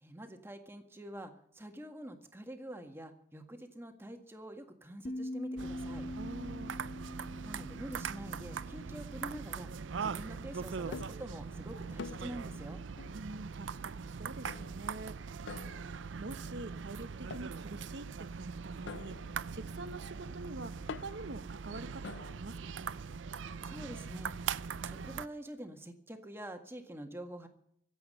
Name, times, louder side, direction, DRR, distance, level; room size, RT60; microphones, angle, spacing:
voice 1, 0.0-6.1 7.4-9.7 10.0-12.8 23.6-24.4 24.9-27.5, right 1 dB, 15° right, 1.7 m, -46 dB
sound 1, 5.0-10.2, left 1 dB, 35° left, 0.7 m, -44 dB
sound 2, 5.6-25.3, right 6 dB, 90° right, 0.5 m, -41 dB
voice 2, 6.2-6.8 13.1-15.2 15.5-23.0, right 2 dB, 65° right, 0.9 m, -46 dB
sound 3, 10.9-11.3 12.0-12.4 13.0-13.3 14.5-15.0 15.5-16.2 17.3-17.6 18.9-22.4, left 5 dB, 70° left, 0.5 m, -47 dB
25.0 x 8.3 x 5.6 m
head